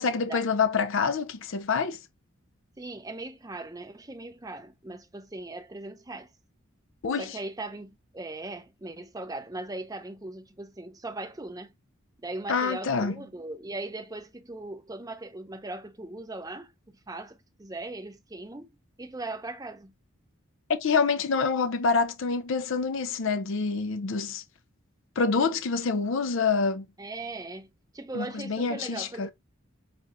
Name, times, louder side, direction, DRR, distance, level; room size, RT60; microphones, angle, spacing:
voice 1, 0.0-2.0 7.0-7.4 12.5-13.1 20.7-24.4 25.2-26.8 28.1-29.3, left 5 dB, 60° left, 0.5 m, -26 dB
voice 2, 2.8-6.3 7.2-11.7 12.2-16.7 17.1-18.7 19.0-19.9 27.0-27.7 27.9-29.3, right 2 dB, 15° right, 0.6 m, -39 dB
6.0 x 2.4 x 2.9 m
head